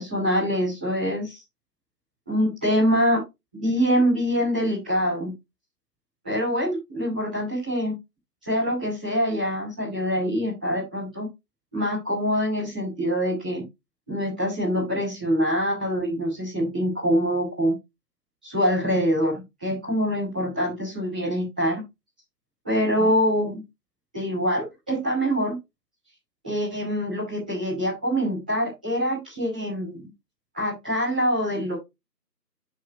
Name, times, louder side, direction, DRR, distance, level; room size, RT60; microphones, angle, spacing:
voice 1, 0.0-1.4 2.3-3.2 3.5-5.3 6.2-7.9 8.4-11.3 11.7-13.6 14.1-17.7 18.4-21.8 22.6-23.6 24.1-25.5 26.4-30.0 30.5-31.7, equal, 5° right, -13 dB, 2.8 m, -25 dB
10.0 x 6.4 x 3.0 m, 0.22 s
figure-of-eight pair, 175°, 50 cm